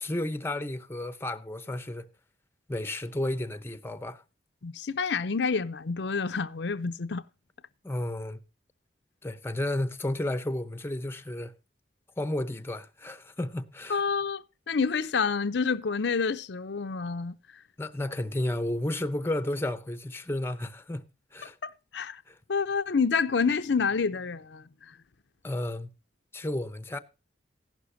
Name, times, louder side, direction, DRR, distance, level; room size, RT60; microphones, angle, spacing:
voice 1, 0.0-2.1 2.7-4.2 7.8-8.4 9.2-11.5 12.2-14.1 17.8-21.0 21.3-21.6 22.3-22.4 25.4-25.9 26.3-27.0, left 1 dB, 15° left, 0.7 m, -32 dB
voice 2, 4.6-7.2 13.9-17.4 21.4-22.2 22.5-24.9, left 5 dB, 75° left, 0.6 m, -28 dB
15.0 x 11.5 x 2.7 m
head